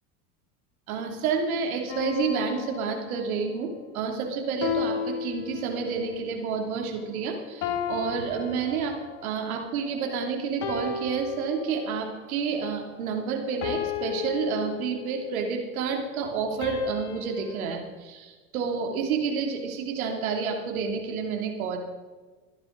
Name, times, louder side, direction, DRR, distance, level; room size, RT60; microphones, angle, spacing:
voice 1, 0.9-9.0 9.2-21.8, right 5 dB, 75° right, 2 dB, 3.1 m, -29 dB
sound 1, 1.9-3.5 4.6-6.1 7.6-9.3 10.6-12.1 13.6-15.4 16.6-17.7, left 7 dB, 65° left, 2.9 m, -34 dB
23.0 x 10.5 x 4.0 m, 1.3 s
hypercardioid pair, 85°, 43 cm